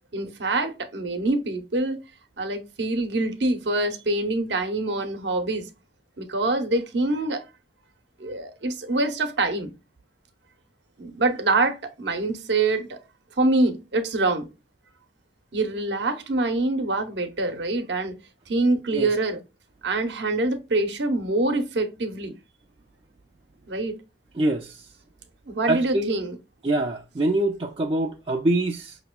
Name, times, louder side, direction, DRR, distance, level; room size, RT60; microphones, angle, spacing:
voice 1, 0.1-2.0 2.4-5.7 6.2-7.4 8.2-9.7 11.0-13.0 13.4-14.5 15.5-18.1 18.5-19.4 19.8-22.3 23.7-23.9 25.5-26.4, right 2 dB, 75° right, 0.8 m, -25 dB
voice 2, 24.4-24.8 25.7-26.1 26.6-29.0, right 1 dB, 30° right, 0.4 m, -24 dB
5.8 x 2.9 x 2.2 m
head